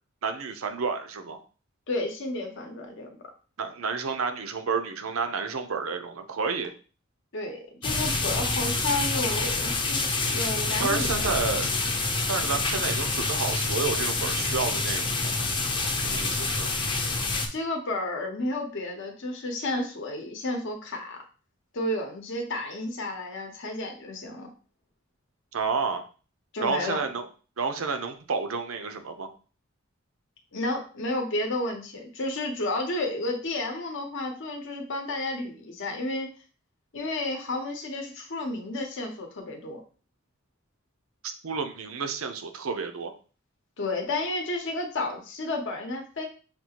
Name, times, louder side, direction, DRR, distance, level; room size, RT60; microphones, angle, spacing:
voice 1, 0.2-1.4 3.6-6.7 10.8-11.7 12.3-15.5 16.0-16.7 25.5-26.1 26.6-27.3 27.6-29.3 41.2-43.1, right 5 dB, 85° right, 7 dB, 0.6 m, -30 dB
voice 2, 1.9-3.2 7.3-11.3 17.5-21.2 21.7-24.5 26.5-27.0 30.5-36.3 36.9-39.8 43.8-46.3, left 2 dB, 65° left, 3 dB, 0.8 m, -31 dB
sound 1, 7.8-17.5, left 3 dB, 25° left, 0.6 m, -27 dB
5.9 x 2.4 x 2.9 m, 0.37 s
head